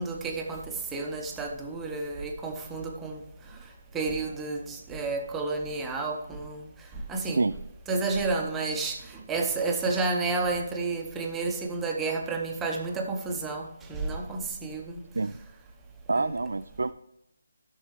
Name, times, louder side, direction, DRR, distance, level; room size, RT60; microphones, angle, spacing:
voice 1, 0.0-3.2 3.9-6.7 7.1-7.4 7.9-15.0 16.2-16.3, right 3 dB, 10° right, 1 dB, 1.0 m, -31 dB
voice 2, 16.1-16.9, right 3 dB, 75° right, 9 dB, 0.3 m, -27 dB
12.5 x 6.4 x 3.2 m, 0.87 s
figure-of-eight pair, 160°, 0 cm